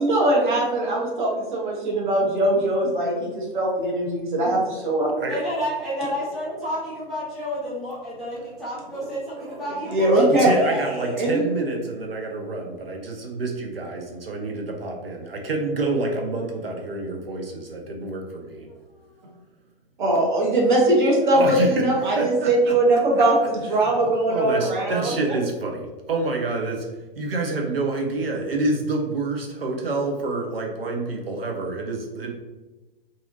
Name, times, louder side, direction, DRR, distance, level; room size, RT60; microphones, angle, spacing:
voice 1, 0.0-5.1 9.9-10.5 11.2-11.4 20.0-25.1, right 1 dB, 55° right, -3 dB, 1.0 m, -21 dB
voice 2, 5.3-11.2 18.7-18.8, equal, ahead, -11 dB, 0.3 m, -30 dB
voice 3, 9.4-9.8 10.2-18.7 21.3-21.9 22.2-22.7 23.1-23.3 23.7-26.9 27.2-32.3, right 2 dB, 80° right, 1 dB, 0.5 m, -28 dB
2.6 x 2.5 x 2.6 m, 1.2 s
figure-of-eight pair, 115°, 29 cm